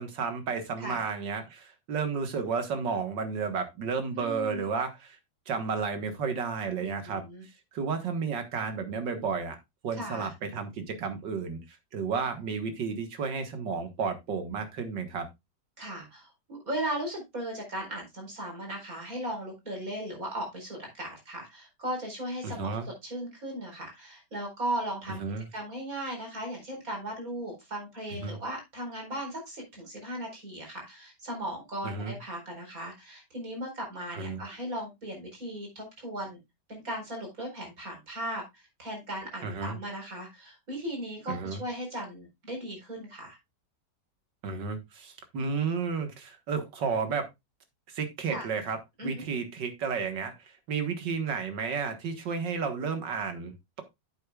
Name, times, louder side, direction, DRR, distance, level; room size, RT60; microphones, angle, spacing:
voice 1, 0.0-5.2 5.5-7.2 7.7-9.6 9.8-15.3 22.4-22.9 25.1-25.5 28.1-28.4 31.8-32.2 34.1-34.4 39.4-39.8 41.3-41.6 44.4-47.3 47.9-48.8 49.0-53.8, right 5 dB, 80° right, 2.1 m, -32 dB
voice 2, 4.2-4.7 6.8-7.4 9.9-10.3 15.8-22.7 23.0-25.2 25.5-36.4 36.7-43.4 48.3-48.4 49.0-49.2, right 1 dB, 50° right, 4.8 m, -37 dB
9.7 x 8.5 x 2.3 m
omnidirectional pair, 1.9 m